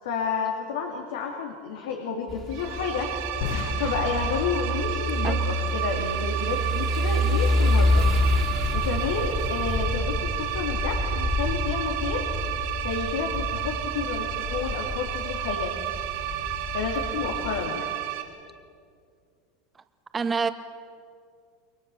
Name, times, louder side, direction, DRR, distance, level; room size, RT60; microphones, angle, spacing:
voice 1, 0.0-3.1 3.8-8.1 8.7-12.2 12.8-15.7 16.7-17.9, left 6 dB, 80° left, 2 dB, 2.6 m, -30 dB
sound 1, 2.3-17.7, left 1 dB, 15° left, 2.9 m, -28 dB
sound 2, 2.5-18.2, right 13 dB, 75° right, 3.6 m, -32 dB
sound 3, 3.4-6.4, left 10 dB, 65° left, 1.2 m, -37 dB
voice 2, 20.1-20.5, right 5 dB, 20° right, 9 dB, 1.5 m, -26 dB
29.0 x 23.0 x 7.0 m, 2.3 s
hypercardioid pair, 100°, 0 cm